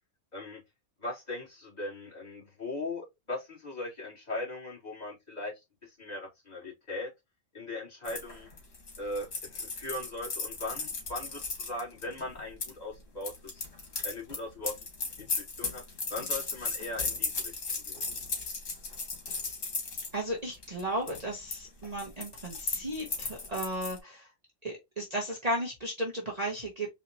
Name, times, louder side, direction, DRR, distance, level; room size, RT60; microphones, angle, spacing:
voice 1, 1.0-7.1 7.5-8.5 9.0-13.7 14.0-14.8 15.2-15.8 16.1-18.0, left 2 dB, 35° left, 2.4 m, -39 dB
sound 1, 8.1-12.7 13.2-20.1 20.5-20.8 21.1-21.6 21.8-24.0, left 4 dB, 80° left, 1.8 m, -36 dB
voice 2, 20.1-24.3 24.6-26.9, right 1 dB, 35° right, 1.0 m, -34 dB
4.3 x 2.8 x 2.8 m
omnidirectional pair, 1.3 m